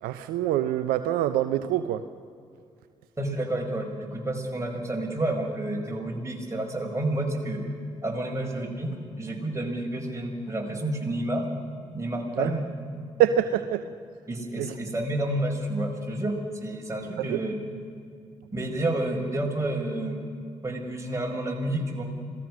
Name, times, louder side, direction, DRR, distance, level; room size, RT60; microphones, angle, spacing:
voice 1, 0.0-2.0 12.4-12.5 13.2-13.8 14.6-14.8 17.2-17.4, right 11 dB, 75° right, 11 dB, 0.7 m, -25 dB
voice 2, 3.2-7.6 8.0-11.5 11.9-12.6 14.3-17.6 18.5-20.2 20.6-22.0, right 1 dB, 20° right, 1 dB, 5.7 m, -30 dB
26.5 x 18.5 x 6.3 m, 2.3 s
hypercardioid pair, 40°, 15 cm